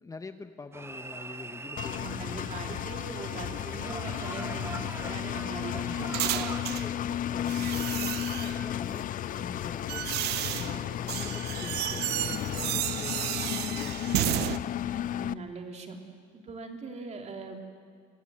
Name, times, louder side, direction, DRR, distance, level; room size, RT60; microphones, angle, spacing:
voice 1, 0.0-2.8 5.7-10.1 10.6-14.5, left 3 dB, 20° left, 9 dB, 0.9 m, -45 dB
sound 1, 0.7-6.8, right 3 dB, 15° right, 0.6 m, -43 dB
Engine, 1.8-15.3, left 11 dB, 55° left, 0.6 m, -33 dB
voice 2, 1.8-6.2 15.1-16.0 16.3-17.7, right 4 dB, 40° right, 2 dB, 3.3 m, -41 dB
sound 2, 4.5-6.9 7.5-8.7 9.4-14.6, right 15 dB, 75° right, 0.6 m, -33 dB
25.5 x 19.0 x 9.0 m, 2.1 s
cardioid pair, 110°, 17 cm